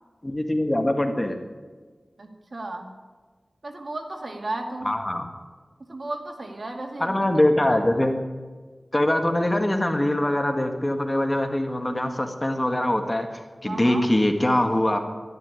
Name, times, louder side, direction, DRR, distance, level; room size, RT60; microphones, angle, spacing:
voice 1, 0.2-1.4 4.8-5.3 7.0-8.2 8.9-13.3 13.6-15.0, left 1 dB, 25° left, 5 dB, 1.8 m, -23 dB
voice 2, 2.2-2.9 3.6-4.9 5.9-7.2 13.6-14.0, right 2 dB, 60° right, 3 dB, 2.2 m, -34 dB
12.5 x 11.0 x 9.8 m, 1.4 s
wide cardioid pair, 55°, 0 cm